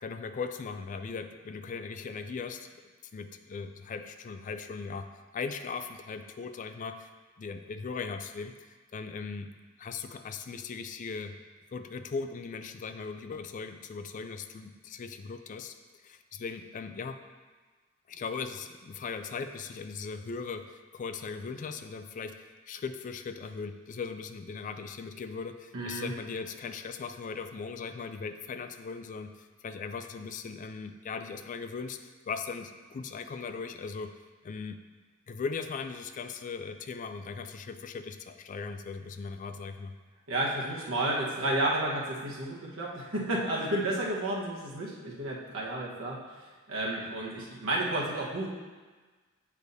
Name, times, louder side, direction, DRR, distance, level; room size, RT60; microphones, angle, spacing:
voice 1, 0.0-2.7 3.1-5.1 5.3-7.1 7.4-9.5 9.8-11.4 11.7-15.7 16.0-17.2 18.1-34.1 34.4-34.8 35.3-40.0, left 5 dB, 40° left, 8 dB, 0.3 m, -38 dB
voice 2, 25.7-26.1 40.3-48.5, right 1 dB, 85° right, -4 dB, 1.3 m, -31 dB
8.3 x 4.8 x 2.7 m, 1.4 s
head